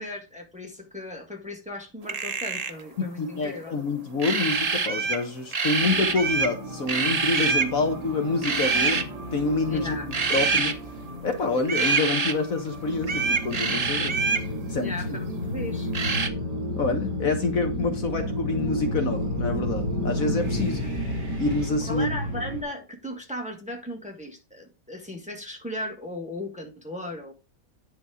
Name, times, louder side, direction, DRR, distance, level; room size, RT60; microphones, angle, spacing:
voice 1, 0.0-3.7 9.7-10.1 14.8-15.2 15.5-15.9 18.0-18.1 21.8-27.3, left 1 dB, 5° right, 1.6 m, -36 dB
sound 1, 2.0-2.8 4.2-5.2 5.5-6.6 6.9-7.7 8.4-9.0 10.1-10.7 11.7-12.3 13.0-14.5 15.9-16.3, right 4 dB, 35° right, 0.6 m, -25 dB
voice 2, 3.0-10.0 10.3-10.7 11.2-14.1 14.7-14.9 16.8-20.8 21.4-22.1, left 3 dB, 55° left, 1.5 m, -27 dB
sound 2, 5.8-22.6, equal, 80° right, 3.2 m, -32 dB
10.5 x 4.3 x 4.8 m
omnidirectional pair, 1.8 m